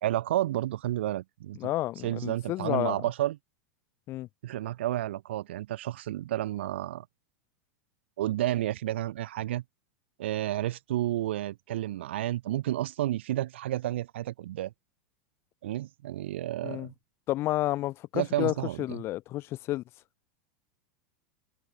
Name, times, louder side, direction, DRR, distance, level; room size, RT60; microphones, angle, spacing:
voice 1, 0.0-1.6 2.0-3.4 4.4-7.0 8.2-9.6 10.2-14.7 15.6-16.9 18.1-18.8, right 14 dB, 80° right, 1.0 m, -31 dB
voice 2, 1.5-3.0 4.1-4.3 16.6-16.9 17.3-19.8, left 16 dB, 45° left, 3.6 m, -31 dB
supercardioid pair, 120°, 6 cm